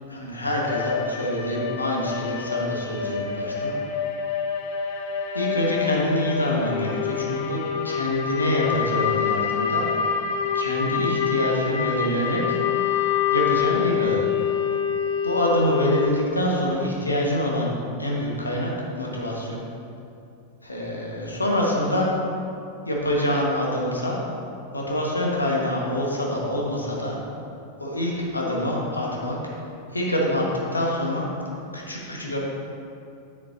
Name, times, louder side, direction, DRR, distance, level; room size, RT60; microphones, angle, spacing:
voice 1, 0.1-3.7 5.3-9.8 10.6-12.6 13.3-14.2 15.2-17.7 18.0-19.6 20.6-22.1 22.9-24.2 24.7-27.2 27.8-29.4 29.9-30.4 30.7-31.3 31.7-32.4, left 1 dB, 80° left, -3 dB, 1.7 m, -26 dB
sound 1, 0.7-16.1, left 7 dB, 50° left, 0.7 m, -26 dB
9.9 x 9.5 x 2.8 m, 2.6 s
figure-of-eight pair, 90°, 0 cm